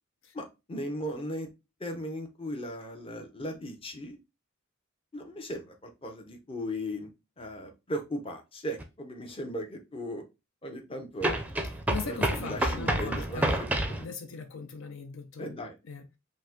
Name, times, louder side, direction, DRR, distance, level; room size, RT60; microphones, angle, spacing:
voice 1, 0.3-1.5 1.8-4.2 5.1-7.1 7.4-10.2 10.6-11.4 12.0-13.7 15.4-15.8, equal, 25° left, 0.8 m, -37 dB
sound 1, 8.8-8.9 11.2-14.0, right 1 dB, 10° right, 0.5 m, -29 dB
voice 2, 11.9-16.2, left 4 dB, 70° left, 0.5 m, -40 dB
5.1 x 2.2 x 3.6 m
head